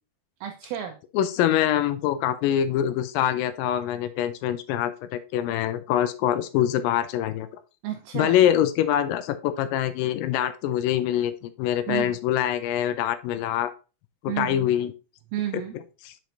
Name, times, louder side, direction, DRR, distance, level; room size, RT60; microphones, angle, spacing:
voice 1, 0.4-1.0 7.8-8.4 11.9-12.2 14.3-14.7 15.3-15.8, right 11 dB, 80° right, 4 dB, 2.3 m, -31 dB
voice 2, 1.1-7.5 8.1-13.7 14.2-14.9 16.1-16.2, left 11 dB, 85° left, 10 dB, 1.9 m, -24 dB
6.7 x 4.5 x 4.0 m, 0.32 s
omnidirectional pair, 4.7 m